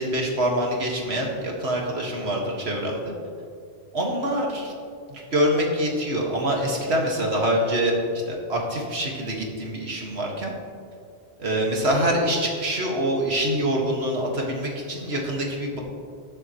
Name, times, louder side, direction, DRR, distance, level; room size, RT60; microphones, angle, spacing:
voice 1, 0.0-3.1 3.9-4.7 5.1-8.0 8.3-10.5 11.4-15.8, right 1 dB, 70° right, -1 dB, 2.1 m, -25 dB
20.0 x 7.7 x 3.1 m, 2.4 s
omnidirectional pair, 1.1 m